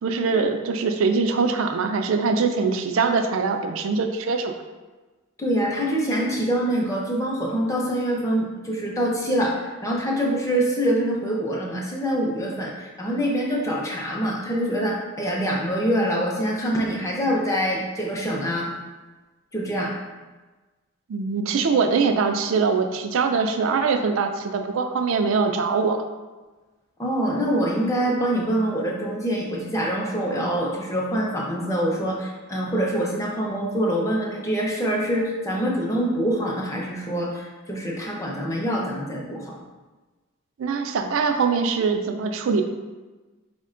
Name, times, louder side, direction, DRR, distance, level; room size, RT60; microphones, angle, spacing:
voice 1, 0.0-4.5 21.1-26.0 40.6-42.6, right 4 dB, 65° right, 6 dB, 0.4 m, -23 dB
voice 2, 5.4-18.7 19.5-19.9 27.0-39.6, equal, 15° left, -2 dB, 0.5 m, -25 dB
4.4 x 2.2 x 3.7 m, 1.2 s
head